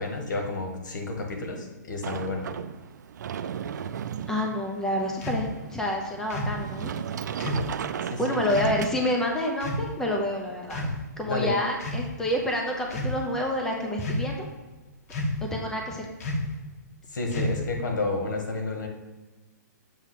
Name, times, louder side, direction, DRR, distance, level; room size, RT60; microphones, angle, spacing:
voice 1, 0.0-2.5 8.1-8.4 11.3-11.5 17.1-18.9, left 2 dB, 80° left, 3 dB, 1.5 m, -30 dB
Sliding door, 2.0-9.5, right 8 dB, 75° right, 0.4 m, -36 dB
voice 2, 4.3-6.9 8.2-14.5 15.4-16.1, left 1 dB, 5° left, 0 dB, 0.7 m, -28 dB
sound 1, 5.2-5.5 6.3-6.6 7.4-7.7 8.5-8.8 9.6-9.9 10.7-11.2 11.8-12.1 12.8-13.2 14.0-14.4 15.1-15.5 16.2-16.5 17.3-17.8, left 1 dB, 55° left, 1.2 m, -30 dB
7.1 x 2.9 x 5.8 m, 1.2 s
hypercardioid pair, 145°, 10 cm